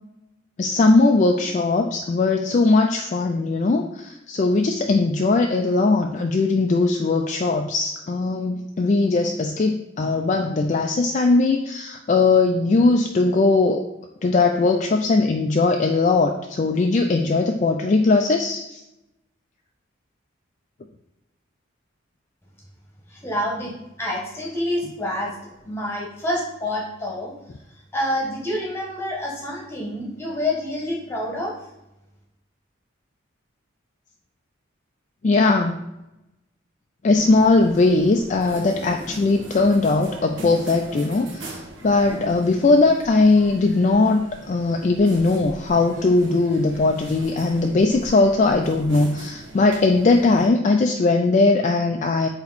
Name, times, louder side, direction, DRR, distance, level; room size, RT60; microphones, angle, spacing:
voice 1, 0.6-13.9 14.2-18.8 35.2-35.8 37.0-52.3, left 3 dB, 35° left, 3 dB, 0.3 m, -19 dB
voice 2, 23.1-27.3 27.9-31.5, left 1 dB, 10° left, -2 dB, 1.3 m, -27 dB
sound 1, 37.1-50.5, right 1 dB, 60° right, 1.1 m, -40 dB
8.4 x 2.9 x 4.1 m, 0.92 s
head